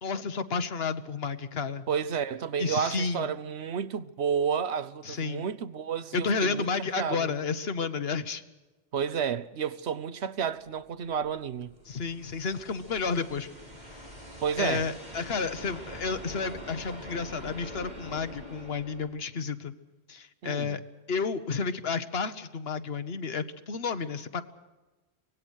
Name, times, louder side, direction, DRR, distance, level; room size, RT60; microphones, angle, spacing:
voice 1, 0.0-1.9 2.6-3.3 5.0-5.4 6.1-8.4 11.9-13.5 14.6-19.7 20.1-20.8 21.1-24.4, left 5 dB, 70° left, 1.3 m, -31 dB
voice 2, 1.9-6.7 7.0-7.3 8.9-11.7 14.4-14.9 20.4-20.8, right 7 dB, 90° right, 1.1 m, -31 dB
sound 1, 10.8-19.1, equal, 40° right, 6.1 m, -45 dB
24.5 x 18.5 x 6.4 m
omnidirectional pair, 1.1 m